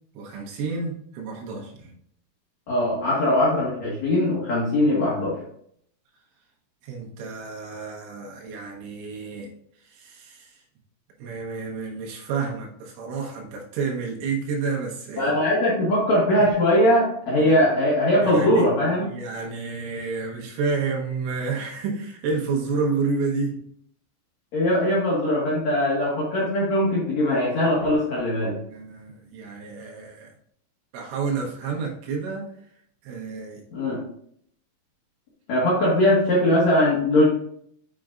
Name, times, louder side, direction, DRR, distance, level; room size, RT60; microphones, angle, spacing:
voice 1, 0.2-1.9 6.8-9.5 9.9-10.6 11.2-15.3 17.4-17.5 18.2-18.6 19.0-23.6 28.7-30.3 30.9-32.5 33.0-33.6, right 4 dB, 85° right, -1 dB, 3.7 m, -30 dB
voice 2, 2.7-5.4 15.2-19.1 24.5-28.6 33.7-34.0 35.5-37.2, left 1 dB, 75° left, -6 dB, 1.6 m, -21 dB
7.6 x 6.0 x 2.4 m, 0.68 s
omnidirectional pair, 5.6 m